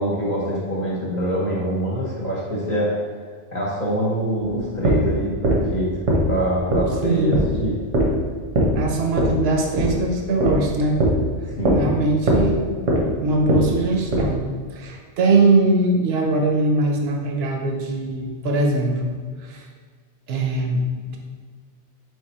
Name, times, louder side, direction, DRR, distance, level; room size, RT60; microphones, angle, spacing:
voice 1, 0.0-2.9 3.5-6.0 6.2-7.7 11.6-11.9, right 1 dB, 40° left, -6 dB, 1.0 m, -24 dB
sound 1, 4.4-14.4, right 1 dB, 90° right, 1.3 m, -21 dB
voice 2, 7.0-7.5 8.8-11.0 11.7-12.8 13.2-19.2 19.4-19.7 20.3-21.2, right 2 dB, 60° right, 2 dB, 0.8 m, -21 dB
3.6 x 3.2 x 4.2 m, 1.5 s
omnidirectional pair, 1.3 m